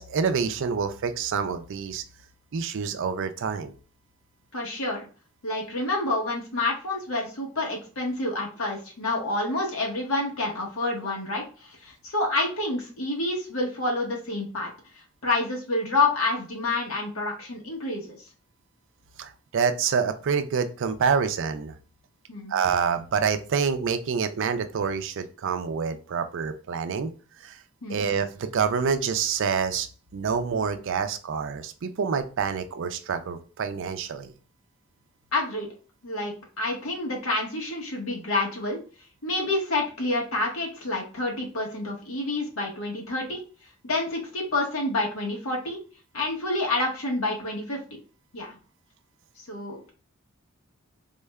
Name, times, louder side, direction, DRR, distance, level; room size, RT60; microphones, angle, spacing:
voice 1, 0.0-2.0 2.5-3.7 19.2-21.8 22.5-27.1 27.4-27.6 27.9-29.9 30.1-34.3, right 6 dB, 60° right, 9 dB, 0.4 m, -27 dB
voice 2, 4.5-5.0 5.4-14.7 15.2-18.2 22.3-22.5 27.8-28.1 35.3-35.7 36.0-38.8 39.2-43.4 43.8-45.8 46.1-47.8 48.3-48.6 49.4-49.9, left 2 dB, 75° left, 0 dB, 1.2 m, -28 dB
3.7 x 2.1 x 3.4 m, 0.37 s
head